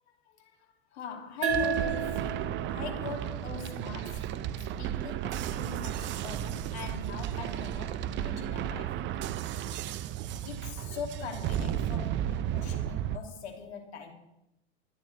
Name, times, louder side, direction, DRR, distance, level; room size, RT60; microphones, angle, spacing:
voice 1, 0.2-9.6 10.4-14.1, left 6 dB, 70° left, 2.7 m, -42 dB
sound 1, 1.4-4.6, right 6 dB, 55° right, 2.8 m, -34 dB
sound 2, 1.5-13.2, right 11 dB, 35° right, 0.7 m, -34 dB
21.5 x 10.5 x 3.4 m
hypercardioid pair, 100°, 34 cm